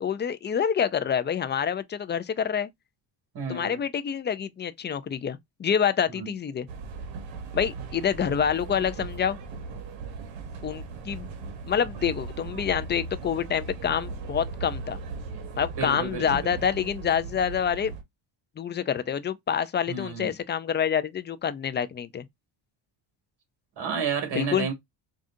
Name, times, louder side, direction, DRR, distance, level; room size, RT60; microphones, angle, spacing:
voice 1, 0.0-2.7 3.5-6.7 7.5-9.4 10.6-11.3 11.7-15.0 15.6-17.9 18.6-22.2 24.3-24.7, left 8 dB, 25° left, 0.4 m, -27 dB
voice 2, 3.3-3.8 6.1-6.3 15.8-16.5 19.9-20.3 23.8-24.7, right 5 dB, 55° right, 2.2 m, -31 dB
sound 1, 6.7-18.0, right 4 dB, 75° right, 1.3 m, -38 dB
5.0 x 2.4 x 2.5 m
cardioid pair, 95°, 46 cm